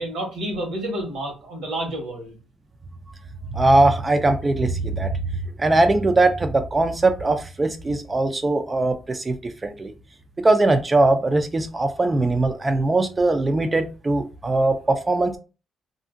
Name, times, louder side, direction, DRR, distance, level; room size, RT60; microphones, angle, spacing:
voice 1, 0.0-2.4, right 1 dB, 85° right, 1.2 m, -29 dB
voice 2, 3.5-5.1 5.6-9.9 10.4-15.4, right 2 dB, 25° right, 0.3 m, -20 dB
2.8 x 2.5 x 2.4 m
cardioid pair, 90°, 0 cm